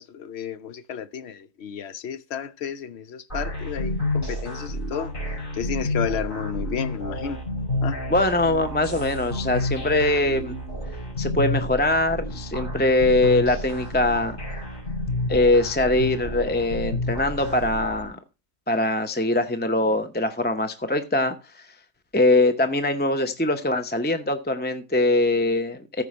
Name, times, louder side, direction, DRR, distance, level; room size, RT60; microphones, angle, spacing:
voice 1, 0.0-5.1 5.5-7.4 7.8-8.0, left 7 dB, 80° left, 0.9 m, -32 dB
sound 1, 3.3-18.1, left 1 dB, 50° left, 5.3 m, -30 dB
voice 2, 8.1-10.6 11.2-14.4 15.3-18.2 18.7-21.7 22.1-26.0, left 2 dB, 10° left, 0.6 m, -22 dB
14.5 x 4.9 x 4.2 m
omnidirectional pair, 1.1 m